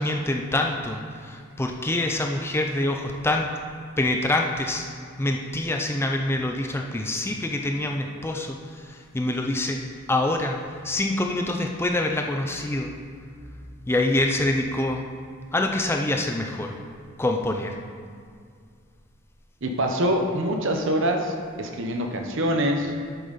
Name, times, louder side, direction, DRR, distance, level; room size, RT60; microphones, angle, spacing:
voice 1, 0.0-3.5 4.0-4.9 5.2-9.8 10.1-10.6 10.8-12.9 13.9-15.0 15.5-16.7 17.2-17.8, left 1 dB, 10° left, 2 dB, 0.4 m, -25 dB
voice 2, 19.6-22.9, equal, 60° right, 3 dB, 0.9 m, -25 dB
8.3 x 7.7 x 4.0 m, 2.1 s
head